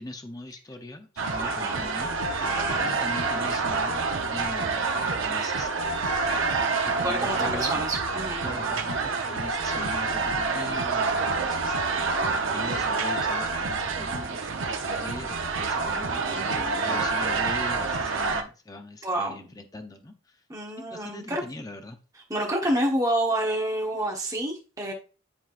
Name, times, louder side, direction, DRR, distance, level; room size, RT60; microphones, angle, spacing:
voice 1, 0.0-2.5 2.8-6.5 6.8-7.8 8.4-20.4 20.8-22.0, left 1 dB, 20° left, 7 dB, 0.6 m, -41 dB
sound 1, 1.2-18.4, right 4 dB, 75° right, 0.8 m, -27 dB
voice 2, 1.4-1.8 2.4-3.0 6.9-8.5 15.9-17.1 19.0-19.4 20.5-21.4 22.3-24.9, right 1 dB, 15° right, -1 dB, 1.2 m, -29 dB
9.9 x 3.8 x 2.5 m, 0.34 s
head